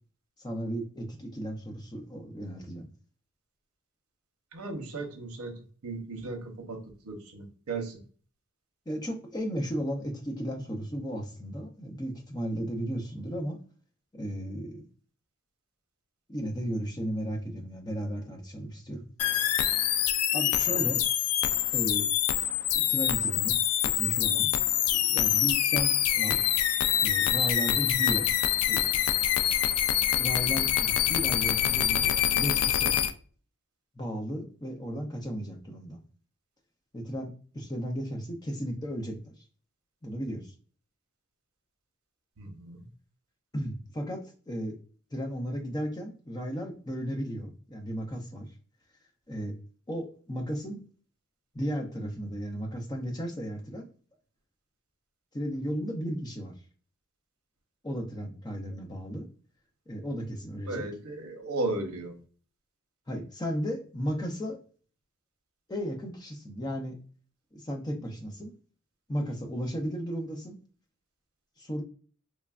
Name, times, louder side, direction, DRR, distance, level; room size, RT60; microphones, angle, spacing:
voice 1, 0.4-2.9 8.9-13.6 14.1-14.8 16.3-19.1 19.4-19.6 20.3-21.0 21.7-22.1 22.7-24.5 24.9-26.4 27.0-28.3 28.7-29.0 30.2-33.0 33.9-36.0 36.9-39.4 40.0-40.5 43.5-44.8 45.1-48.5 49.3-49.6 49.9-50.8 51.5-53.9 55.3-56.5 57.8-59.3 59.9-60.9 63.1-64.6 65.7-67.0 67.5-68.5 69.1-70.6 71.6-71.8, equal, 20° left, 3 dB, 0.5 m, -35 dB
voice 2, 4.5-6.8 7.0-8.0 20.7-20.9 42.4-42.8 60.7-62.2, right 2 dB, 90° right, 4 dB, 0.7 m, -36 dB
sound 1, 19.2-33.1, left 11 dB, 85° left, 0.3 m, -25 dB
3.0 x 2.4 x 2.3 m, 0.40 s
head